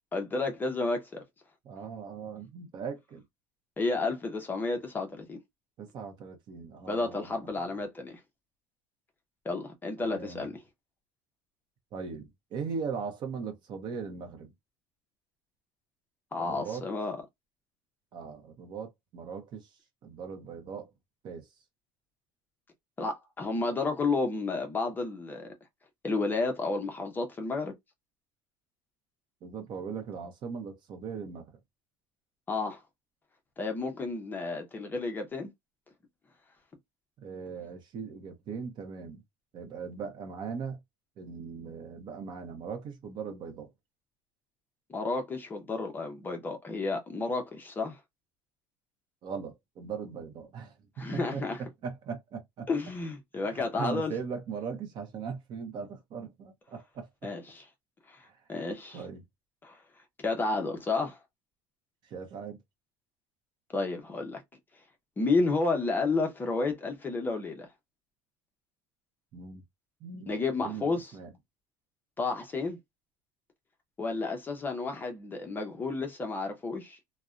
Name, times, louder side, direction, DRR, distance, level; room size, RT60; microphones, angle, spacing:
voice 1, 0.1-1.1 3.8-5.4 6.9-8.2 9.4-10.6 16.3-17.2 23.0-25.5 26.0-27.7 32.5-32.8 33.6-35.5 44.9-48.0 51.0-51.6 52.7-54.1 57.2-57.6 58.1-59.0 59.6-59.8 60.2-61.2 63.7-64.4 65.2-67.7 70.3-71.1 72.2-72.8 74.0-77.0, left 3 dB, 15° left, 0.5 m, -31 dB
voice 2, 1.6-3.2 5.8-7.8 10.0-10.5 11.9-14.5 16.4-16.9 18.1-19.7 20.0-20.9 21.2-21.5 29.4-31.5 37.2-39.2 39.5-40.8 41.2-43.7 49.2-52.7 53.3-57.3 58.3-58.4 58.9-59.2 62.0-62.6 69.3-69.6 70.0-70.3 70.6-71.3, right 6 dB, 40° right, 0.7 m, -39 dB
2.5 x 2.0 x 2.3 m
cardioid pair, 140°, 12 cm